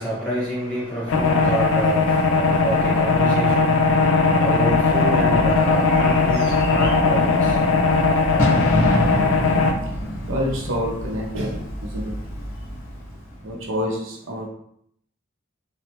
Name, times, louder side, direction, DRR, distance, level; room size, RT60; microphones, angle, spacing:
voice 1, 0.0-7.6, right 1 dB, 5° left, -10 dB, 1.3 m, -28 dB
sound 1, 1.1-9.7, left 4 dB, 75° left, 0.4 m, -19 dB
Bird / Fireworks, 4.4-13.6, equal, 45° left, 0.9 m, -29 dB
voice 2, 10.3-12.2 13.4-14.5, equal, 75° right, 0 dB, 0.6 m, -27 dB
3.0 x 2.0 x 2.8 m, 0.70 s
head